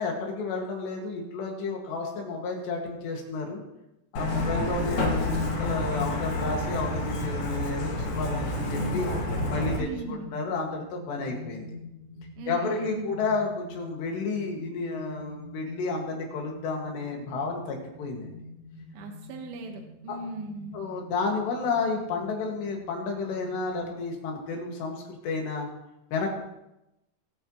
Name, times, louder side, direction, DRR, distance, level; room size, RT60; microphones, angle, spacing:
voice 1, 0.0-3.6 4.1-9.1 9.5-11.7 12.5-18.4 20.1-20.2 20.7-25.7 26.1-26.3, left 4 dB, 90° left, 1 dB, 4.3 m, -31 dB
Truck, 4.2-9.8, left 2 dB, 50° left, 2.4 m, -29 dB
voice 2, 4.3-4.7 9.8-10.2 12.4-13.1 18.9-20.8, right 3 dB, 70° right, 3 dB, 3.2 m, -38 dB
sound 1, 4.5-23.9, left 1 dB, 30° right, 2.4 m, -45 dB
21.5 x 9.1 x 3.1 m, 0.91 s
omnidirectional pair, 4.7 m